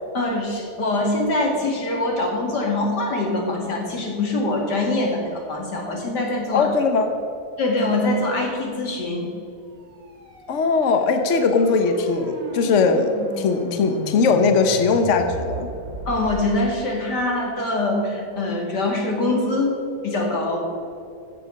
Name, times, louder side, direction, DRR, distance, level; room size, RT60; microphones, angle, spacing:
voice 1, 0.1-6.7 7.6-9.3 16.1-19.8 20.0-20.6, left 2 dB, 90° left, 0 dB, 2.8 m, -23 dB
voice 2, 6.5-7.1 10.5-13.1 13.4-15.7, left 4 dB, 50° left, 6 dB, 1.2 m, -19 dB
sound 1, 9.8-16.7, right 1 dB, 55° right, 2.7 m, -34 dB
15.0 x 7.6 x 6.5 m, 2.6 s
omnidirectional pair, 1.7 m